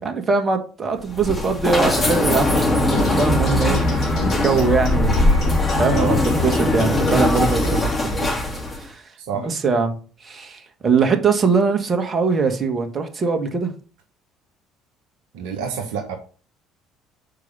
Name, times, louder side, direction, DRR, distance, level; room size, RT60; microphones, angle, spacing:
voice 1, 0.0-5.4 5.8-8.3 8.7-9.1 9.4-13.7, right 5 dB, 35° right, 1.8 m, -22 dB
sound 1, 1.0-8.9, left 2 dB, 25° left, 3.3 m, -21 dB
sound 2, 2.9-7.9, left 2 dB, 60° left, 3.4 m, -26 dB
voice 2, 5.9-6.2 9.2-9.5 15.3-16.2, right 6 dB, 70° right, 1.2 m, -27 dB
6.6 x 4.9 x 5.5 m
figure-of-eight pair, 55°, 0 cm